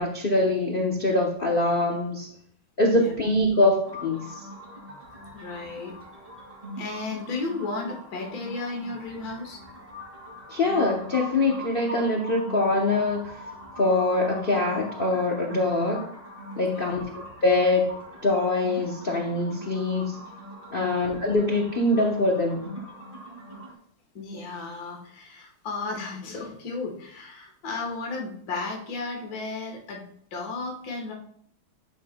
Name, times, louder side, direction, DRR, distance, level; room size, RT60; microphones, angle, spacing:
voice 1, 0.0-2.3 2.8-4.2 10.5-13.4 13.8-16.1 16.5-17.9 18.2-20.2 20.7-22.6, left 2 dB, 80° left, -1 dB, 0.5 m, -24 dB
sound 1, 3.8-23.7, equal, 15° right, 2.1 m, -42 dB
voice 2, 5.3-6.0 6.8-9.6 16.7-17.0 20.8-21.1 24.1-30.1 30.3-31.1, left 3 dB, 50° left, 0 dB, 1.7 m, -34 dB
10.5 x 5.4 x 2.2 m, 0.64 s
omnidirectional pair, 2.3 m